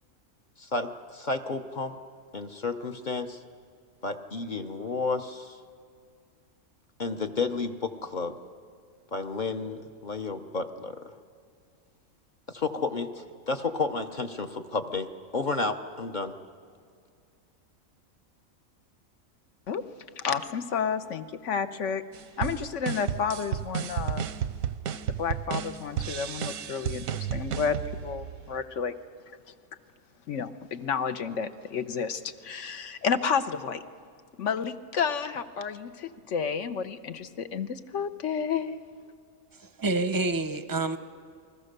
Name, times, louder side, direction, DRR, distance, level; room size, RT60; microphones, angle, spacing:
voice 1, 0.6-1.9 2.3-3.4 4.0-5.6 7.0-8.3 9.1-11.0 12.5-16.4, left 3 dB, 40° left, 6 dB, 0.9 m, -31 dB
voice 2, 20.2-22.0 22.4-24.3 25.1-28.9 30.3-33.8 34.4-38.8, left 6 dB, 65° left, 10 dB, 1.2 m, -31 dB
sound 1, 22.1-28.6, right 9 dB, 85° right, 1.2 m, -33 dB
voice 3, 39.6-41.0, right 3 dB, 20° right, 10 dB, 0.6 m, -28 dB
28.5 x 21.0 x 6.7 m, 2.2 s
omnidirectional pair, 1.4 m